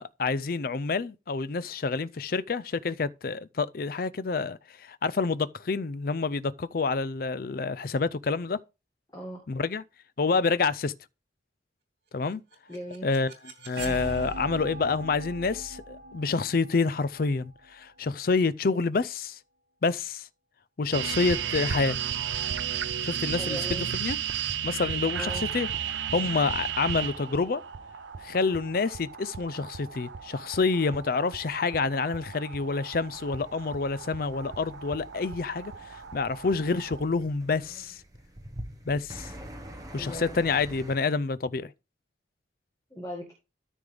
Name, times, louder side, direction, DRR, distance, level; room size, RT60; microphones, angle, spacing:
voice 1, 0.0-8.6 9.5-9.8 10.2-10.9 12.1-12.4 13.0-13.3 13.7-19.4 19.8-20.3 20.8-22.0 23.0-24.2 24.6-25.7 26.1-27.6 28.2-38.0 38.9-39.3 39.9-41.7, left 4 dB, 50° left, 0.4 m, -28 dB
voice 2, 9.1-9.4 12.7-13.1 23.4-23.9 25.1-25.5 40.0-40.4 42.9-43.3, equal, 20° left, 1.8 m, -38 dB
sound 1, 12.3-18.2, right 2 dB, 60° right, 3.1 m, -41 dB
sound 2, 20.9-37.0, right 9 dB, 75° right, 0.6 m, -34 dB
sound 3, 33.0-41.0, equal, 20° right, 1.2 m, -46 dB
13.0 x 5.3 x 3.4 m
head